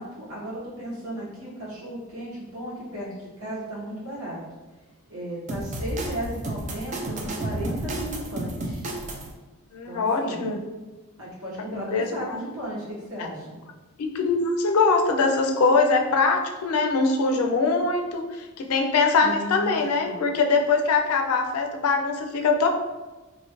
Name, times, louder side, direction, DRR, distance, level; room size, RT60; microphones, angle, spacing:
voice 1, 0.0-4.4 5.1-8.8 9.8-10.4 11.2-13.6 19.2-20.2, right 1 dB, 70° right, -7 dB, 1.3 m, -35 dB
sound 1, 5.5-9.3, right 1 dB, 35° right, 0.3 m, -31 dB
voice 2, 9.7-10.6 11.7-12.4 13.2-13.3 14.0-22.7, left 4 dB, 85° left, 4 dB, 0.4 m, -22 dB
3.0 x 2.4 x 2.9 m, 1.2 s
head